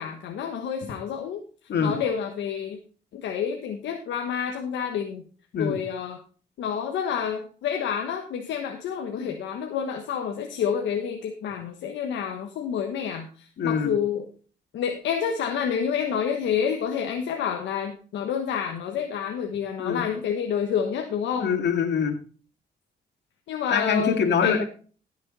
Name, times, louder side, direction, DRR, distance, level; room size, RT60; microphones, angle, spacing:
voice 1, 0.0-1.4 1.8-2.8 3.1-5.2 5.6-6.2 6.6-14.2 14.7-21.5 23.5-24.6, left 7 dB, 90° left, 4 dB, 1.2 m, -28 dB
voice 2, 13.6-13.9 19.8-20.0 21.4-22.2 23.7-24.6, left 6 dB, 70° left, 5 dB, 2.3 m, -24 dB
15.0 x 6.6 x 4.1 m, 0.40 s
cardioid pair, 75°, 18 cm